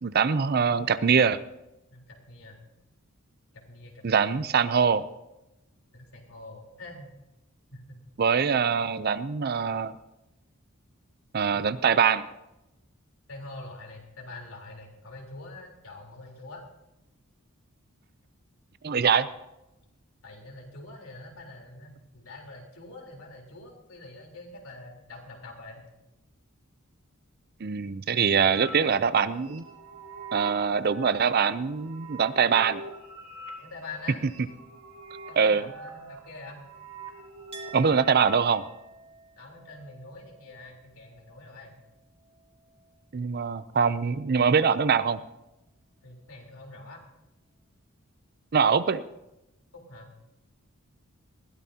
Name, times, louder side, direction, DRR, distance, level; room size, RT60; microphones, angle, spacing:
voice 1, 0.0-1.4 4.0-5.1 8.2-10.0 11.3-12.2 18.8-19.3 27.6-29.6 30.3-32.8 35.4-35.7 37.7-38.6 43.1-45.2 48.5-49.0, right 6 dB, 45° right, 15 dB, 0.5 m, -23 dB
voice 2, 1.9-2.6 3.5-4.4 5.9-7.1 7.7-8.0 13.3-16.6 20.2-25.8 33.6-34.2 35.3-36.6 39.4-41.8 46.0-47.0 49.7-50.1, left 2 dB, 75° left, 0 dB, 3.8 m, -45 dB
sound 1, 28.4-38.7, right 3 dB, 90° right, 2.4 m, -44 dB
Chink clink, 37.5-43.0 43.3-44.2, right 4 dB, 30° right, 2.7 m, -51 dB
20.5 x 16.0 x 2.8 m, 0.94 s
head